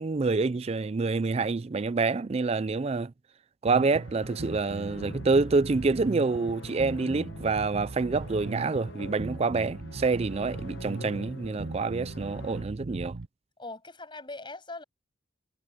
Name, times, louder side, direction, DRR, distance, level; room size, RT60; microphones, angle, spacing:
voice 1, 0.0-3.1 3.6-13.2, right 4 dB, 35° right, 0.4 m, -27 dB
sound 1, 3.7-12.6, left 2 dB, 70° left, 1.5 m, -46 dB
sound 2, 3.7-13.3, right 2 dB, 75° right, 1.0 m, -39 dB
voice 2, 13.6-14.8, left 2 dB, 25° left, 8.0 m, -41 dB
head